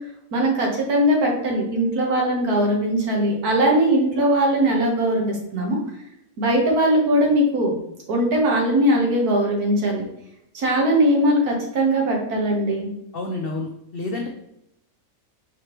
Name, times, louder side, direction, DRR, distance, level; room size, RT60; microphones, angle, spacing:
voice 1, 0.3-5.8 6.4-7.8 8.1-10.0 10.5-12.9, right 1 dB, 85° right, -1 dB, 1.6 m, -20 dB
voice 2, 13.1-14.3, left 2 dB, 75° left, 2 dB, 0.5 m, -29 dB
4.7 x 3.2 x 2.9 m, 0.80 s
omnidirectional pair, 1.5 m